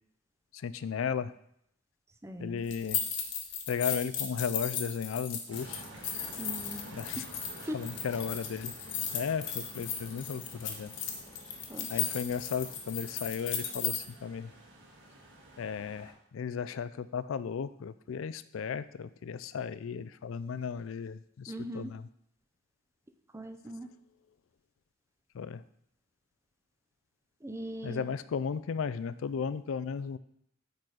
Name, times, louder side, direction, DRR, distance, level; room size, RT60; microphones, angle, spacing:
voice 1, 0.5-1.3 2.4-3.0 3.7-5.8 6.9-7.2 7.7-8.7 9.1-10.9 11.9-14.5 15.6-22.0 25.3-25.6 27.8-30.2, left 6 dB, 85° left, 14 dB, 0.4 m, -35 dB
voice 2, 2.2-2.6 6.4-6.8 7.6-7.8 11.7-12.0 21.5-21.9 23.3-23.9 27.4-28.1, right 1 dB, 15° right, 6 dB, 0.5 m, -40 dB
Keys Jangling, 2.7-14.0, left 7 dB, 65° left, 1.1 m, -36 dB
sound 1, 5.5-16.1, right 1 dB, 65° right, 1.8 m, -50 dB
8.7 x 4.0 x 4.8 m, 0.72 s
head